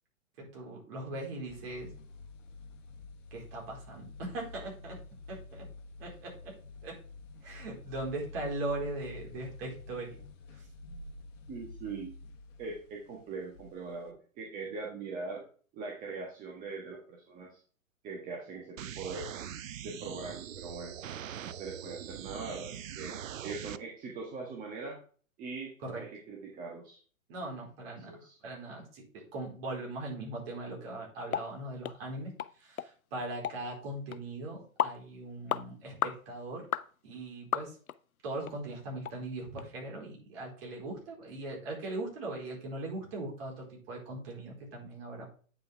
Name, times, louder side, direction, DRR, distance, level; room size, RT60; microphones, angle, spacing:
voice 1, 0.4-1.9 3.3-5.0 5.3-5.7 6.0-6.5 6.8-7.0 7.4-10.2 10.5-10.6 25.8-26.0 27.3-28.1 28.4-32.3 32.6-36.7 37.0-37.8 38.2-45.2, right 2 dB, 45° right, -1 dB, 4.3 m, -40 dB
sound 1, 1.5-14.1, left 3 dB, 60° left, 1.3 m, -49 dB
voice 2, 11.5-12.1 12.6-15.4 15.7-17.6 18.0-19.3 19.8-21.0 21.4-25.0 25.4-27.0 28.1-28.4, right 4 dB, 20° right, 0 dB, 1.4 m, -41 dB
sound 2, 18.8-23.8, right 9 dB, 70° right, 0.7 m, -42 dB
sound 3, 31.3-31.5 31.8-32.0 32.4-32.5 32.8-32.9 33.4-33.6 34.1-34.2 34.8-35.0 35.5-35.6 36.0-36.2 36.7-36.9 37.5-38.0 38.4-38.5 39.0-39.2 39.6-39.7, left 9 dB, 90° left, 0.6 m, -32 dB
9.1 x 5.6 x 3.4 m, 0.41 s
hypercardioid pair, 125°, 41 cm